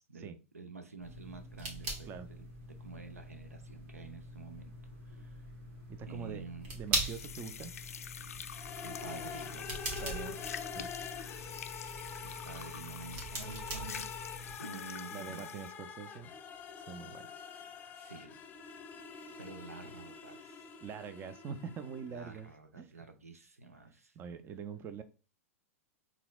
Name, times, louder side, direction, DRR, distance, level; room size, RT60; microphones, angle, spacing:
voice 1, 0.0-4.7 5.1-5.3 6.1-6.8 8.8-10.4 11.8-14.1 14.6-15.5 18.0-18.4 19.4-20.6 22.1-24.1, right 4 dB, 90° right, 0.7 m, -49 dB
sound 1, 1.0-14.5, right 2 dB, 55° right, 1.8 m, -42 dB
voice 2, 5.9-6.4 6.7-7.7 10.0-10.4 10.8-10.9 15.1-16.3 16.8-17.2 20.8-22.5 22.8-22.9 24.2-25.0, right 6 dB, 30° right, 0.5 m, -44 dB
sound 2, 7.0-15.8, left 8 dB, 75° left, 0.4 m, -46 dB
sound 3, 8.5-22.4, left 6 dB, 25° left, 0.7 m, -46 dB
5.8 x 3.6 x 2.3 m
hypercardioid pair, 100°, 8 cm